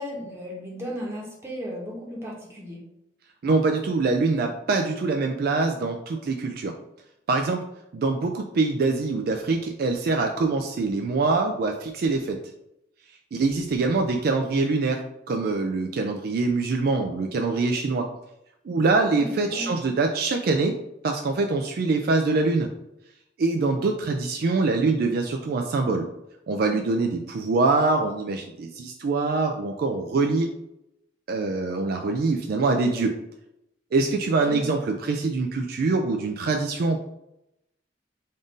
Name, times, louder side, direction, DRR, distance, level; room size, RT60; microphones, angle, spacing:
voice 1, 0.0-2.8 19.0-19.7 34.5-34.7, equal, 15° right, -3 dB, 0.9 m, -35 dB
voice 2, 3.4-6.7 7.3-7.6 7.9-12.4 13.3-15.0 15.3-18.1 18.7-20.7 21.0-22.7 23.4-26.1 26.5-30.5 31.3-33.1 33.9-37.0, right 3 dB, 50° right, 4 dB, 0.3 m, -24 dB
3.6 x 2.5 x 3.8 m, 0.83 s
head